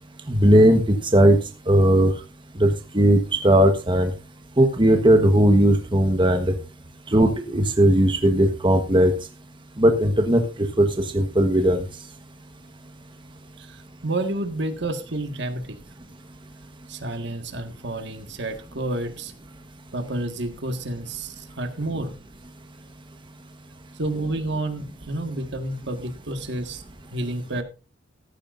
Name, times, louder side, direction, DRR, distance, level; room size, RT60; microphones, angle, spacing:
voice 1, 0.3-1.4 1.7-2.1 2.6-4.1 4.6-6.5 7.1-9.1 9.8-10.4 10.8-10.9 11.1-11.8, right 1 dB, 25° right, 5 dB, 1.3 m, -17 dB
voice 2, 13.6-15.8 16.9-19.3 19.9-22.1 24.0-26.8 27.1-27.6, right 2 dB, 65° right, 7 dB, 1.8 m, -30 dB
14.5 x 13.5 x 2.6 m, 0.32 s
head